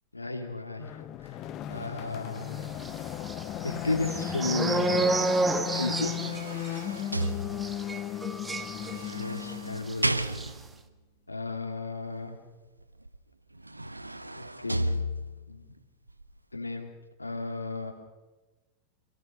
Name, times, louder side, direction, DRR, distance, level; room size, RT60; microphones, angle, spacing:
voice 1, 0.1-1.4 1.7-2.7 3.6-5.1 5.7-6.4 9.1-10.2 11.3-12.4 14.6-14.9 15.5-15.7 16.5-16.9 17.2-17.9, left 3 dB, 80° left, 5 dB, 2.6 m, -34 dB
sound 1, 0.8-10.0, left 13 dB, 35° left, 1.0 m, -36 dB
sound 2, 2.8-9.5 9.8-9.9 10.2-10.5, right 3 dB, 10° right, 1.6 m, -31 dB
sound 3, 5.8-8.0 8.8-10.8 13.1-13.2 13.5-15.5 16.1-16.2, right 1 dB, 85° right, 0.8 m, -33 dB
27.5 x 17.5 x 6.5 m, 1.2 s
figure-of-eight pair, 90°, 0 cm